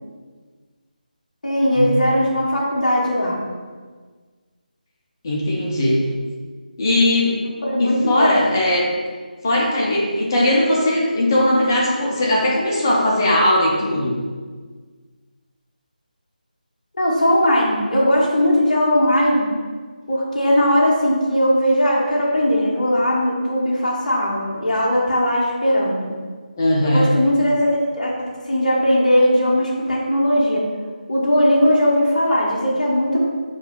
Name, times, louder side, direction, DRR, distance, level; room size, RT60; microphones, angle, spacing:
voice 1, 1.4-3.4 7.6-8.4 17.0-19.5 20.1-26.1 26.8-28.1 28.5-30.7 31.1-33.3, equal, 55° left, -4 dB, 0.8 m, -18 dB
voice 2, 5.2-6.0 6.8-7.4 7.8-8.9 9.4-14.2 26.6-27.1, left 1 dB, 25° left, -4 dB, 0.5 m, -19 dB
5.3 x 2.6 x 2.2 m, 1.5 s
figure-of-eight pair, 155°, 5 cm